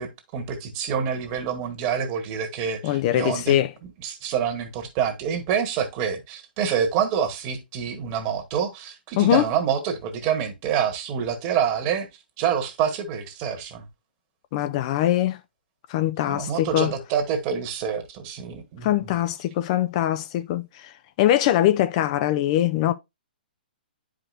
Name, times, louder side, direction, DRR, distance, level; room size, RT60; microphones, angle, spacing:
voice 1, 0.0-3.6 4.0-12.1 12.4-13.8 16.3-19.0, right 7 dB, 35° right, 1.4 m, -27 dB
voice 2, 2.8-3.7 9.2-9.5 14.5-15.4 15.9-16.9 18.8-22.9, left 13 dB, 40° left, 0.4 m, -22 dB
9.8 x 4.9 x 2.5 m
figure-of-eight pair, 125°, 5 cm